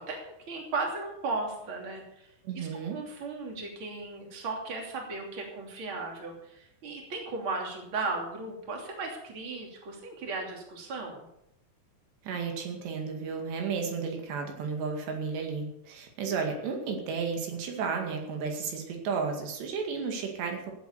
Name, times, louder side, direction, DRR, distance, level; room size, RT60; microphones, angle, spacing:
voice 1, 0.0-2.3 2.5-11.3, right 3 dB, 35° right, 1 dB, 3.2 m, -36 dB
voice 2, 2.4-3.0 12.2-20.7, right 5 dB, 80° right, 3 dB, 4.3 m, -33 dB
16.5 x 8.7 x 6.8 m, 0.82 s
omnidirectional pair, 4.8 m